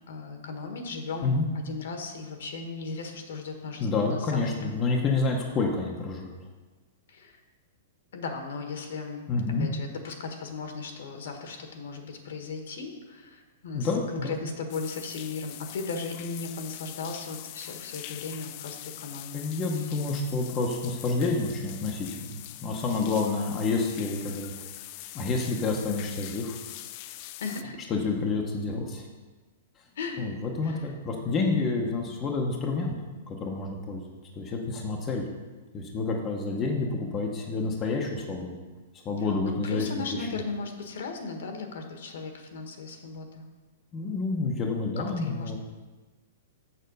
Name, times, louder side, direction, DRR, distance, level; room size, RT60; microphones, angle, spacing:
voice 1, 0.1-4.8 7.1-7.4 8.1-9.3 9.6-19.4 27.4-27.8 29.9-30.2 30.6-30.9 39.2-43.4 45.0-45.6, left 4 dB, 65° left, 4 dB, 1.5 m, -37 dB
voice 2, 3.8-6.3 9.3-9.7 13.7-14.4 19.3-24.5 25.1-26.6 27.9-29.0 30.2-32.9 33.3-35.2 35.7-38.6 39.0-40.3 43.9-45.6, left 3 dB, 15° left, 0 dB, 0.8 m, -29 dB
sound 1, 14.7-27.6, left 14 dB, 35° left, 0.3 m, -43 dB
7.2 x 6.6 x 5.3 m, 1.2 s
hypercardioid pair, 170°, 0 cm